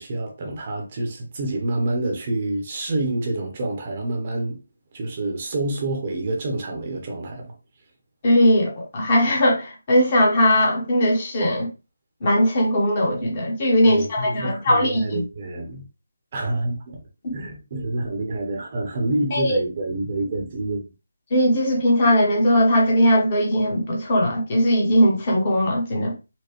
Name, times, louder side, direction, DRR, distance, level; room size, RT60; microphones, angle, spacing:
voice 1, 0.0-4.6 4.9-7.5 13.8-15.8 16.3-17.0 17.3-20.9, right 2 dB, 35° right, 0.9 m, -27 dB
voice 2, 8.2-11.7 12.2-15.2 17.2-17.3 19.3-19.6 21.3-26.1, equal, 30° left, 1.0 m, -19 dB
4.4 x 2.2 x 2.9 m
figure-of-eight pair, 155°, 0 cm